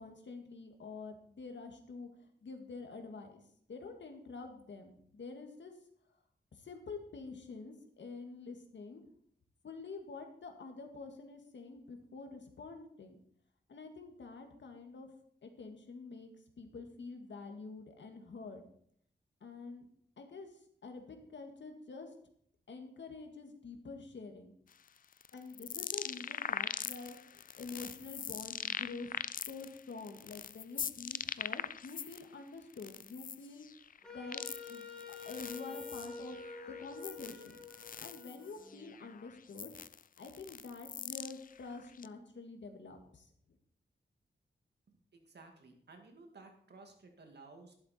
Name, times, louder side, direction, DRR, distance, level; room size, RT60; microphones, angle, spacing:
voice 1, 0.0-3.4 3.7-5.7 6.5-9.0 9.6-13.2 13.7-15.1 15.4-16.3 16.6-18.6 19.4-19.9 20.2-20.5 20.8-22.1 22.7-24.5 25.3-29.2 29.5-33.7 34.1-34.4 34.7-36.4 36.8-37.6 38.0-39.7 40.2-43.3, left 4 dB, 80° left, 5 dB, 1.9 m, -47 dB
sound 1, 24.7-32.2 32.6-42.1, left 7 dB, 50° left, 0.4 m, -42 dB
Wind instrument woodwind instrument, 34.0-39.0, left 4 dB, 5° left, 2.4 m, -48 dB
voice 2, 45.1-47.7, right 3 dB, 65° right, 4 dB, 2.2 m, -55 dB
11.5 x 11.5 x 4.4 m, 0.65 s
wide cardioid pair, 160°, 19 cm